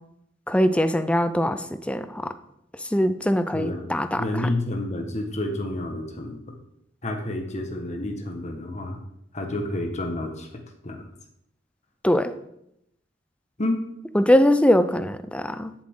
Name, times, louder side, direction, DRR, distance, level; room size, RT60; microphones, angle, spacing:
voice 1, 0.5-2.3 2.9-4.5 12.0-12.3 14.1-15.7, equal, 5° left, 11 dB, 0.5 m, -22 dB
voice 2, 3.5-3.9 4.2-6.4 7.0-9.0 9.3-10.5 10.8-11.1 13.6-13.8, left 1 dB, 40° left, 4 dB, 1.5 m, -29 dB
14.0 x 7.5 x 3.8 m, 0.79 s
head